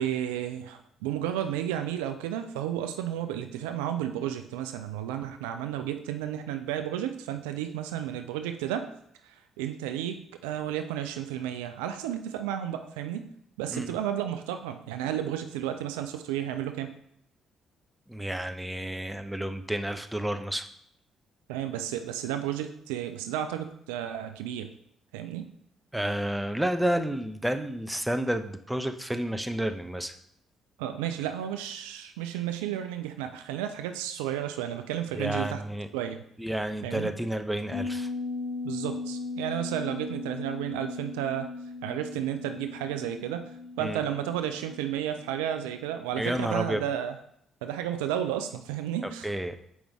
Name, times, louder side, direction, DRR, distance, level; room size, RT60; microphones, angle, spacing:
voice 1, 0.0-8.9 9.2-10.2 10.4-13.3 13.6-16.9 21.5-24.7 25.1-25.5 30.8-35.6 35.9-36.2 36.8-37.1 38.6-41.5 41.8-43.5 43.8-47.2 47.6-49.3, right 10 dB, 80° right, 7 dB, 0.4 m, -32 dB
voice 2, 18.1-20.6 25.9-30.1 35.2-35.9 36.4-38.1 43.8-44.0 46.2-46.8 49.2-49.6, right 1 dB, 5° right, 7 dB, 0.7 m, -30 dB
sound 1, 37.7-46.0 46.3-46.4, left 3 dB, 75° left, 1.4 m, -38 dB
7.1 x 5.2 x 3.5 m, 0.70 s
hypercardioid pair, 45°, 0 cm